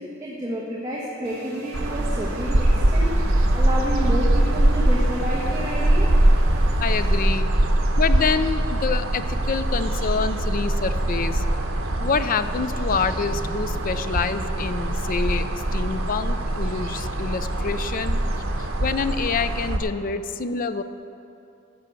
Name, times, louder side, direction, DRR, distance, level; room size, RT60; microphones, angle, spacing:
voice 1, 0.0-3.1 3.5-6.1 7.4-7.5, equal, 20° right, -6 dB, 1.3 m, -30 dB
sound 1, 1.2-7.2, equal, 55° right, 3.2 m, -40 dB
sound 2, 1.7-19.8, right 1 dB, 85° right, 1.0 m, -22 dB
sound 3, 5.2-18.8, equal, 35° right, 3.5 m, -42 dB
voice 2, 6.8-7.5 8.0-11.4 12.0-18.2 18.6-20.8, left 5 dB, 45° left, 11 dB, 0.5 m, -27 dB
15.5 x 6.3 x 6.9 m, 2.8 s
head